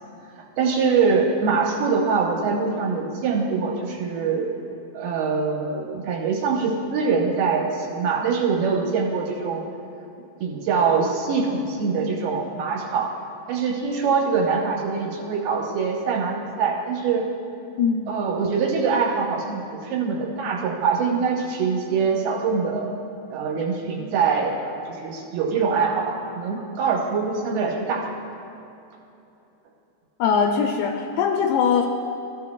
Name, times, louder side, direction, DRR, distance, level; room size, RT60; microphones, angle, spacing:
voice 1, 0.4-4.5 4.9-9.6 10.4-13.1 13.5-17.3 18.1-22.9 23.3-28.1, right 5 dB, 70° right, -1 dB, 2.7 m, -24 dB
voice 2, 17.8-18.2 30.2-31.9, left 6 dB, 80° left, 2 dB, 2.4 m, -21 dB
17.5 x 13.0 x 2.3 m, 2.8 s
omnidirectional pair, 5.0 m